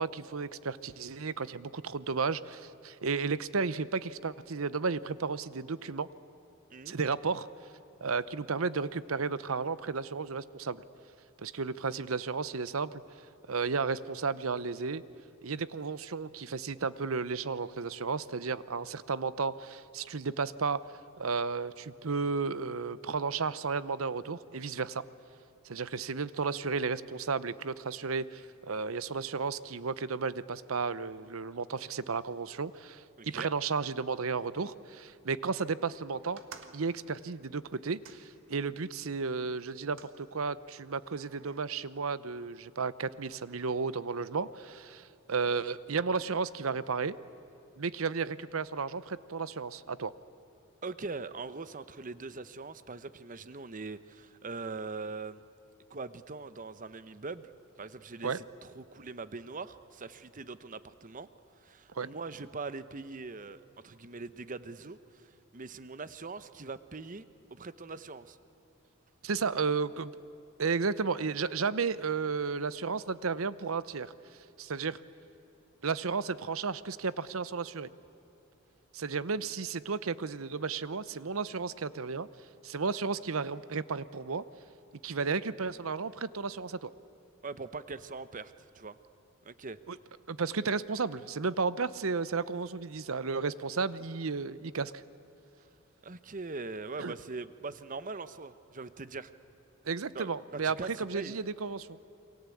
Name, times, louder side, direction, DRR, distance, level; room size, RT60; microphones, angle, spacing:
voice 1, 0.0-6.1 6.9-7.5 8.0-10.8 11.4-13.0 13.5-15.0 15.4-25.0 25.6-36.4 36.7-47.2 47.8-50.1 58.2-58.4 61.9-62.1 69.2-70.1 70.6-74.1 74.6-75.0 75.8-77.9 78.9-82.3 82.6-84.4 85.0-86.9 89.9-90.0 90.3-95.0 97.0-97.1 99.8-102.0, right 4 dB, 80° right, 16 dB, 0.8 m, -33 dB
voice 2, 33.2-33.5 50.8-55.4 55.9-57.5 57.8-61.3 61.6-68.4 69.4-69.5 87.4-89.0 89.4-89.8 96.0-99.3 100.1-101.4, right 3 dB, 40° right, 13 dB, 0.9 m, -42 dB
sound 1, 36.2-39.0 39.6-40.2 41.0-41.6, right 6 dB, 65° right, 1.7 m, -54 dB
29.0 x 23.5 x 8.5 m, 2.9 s
head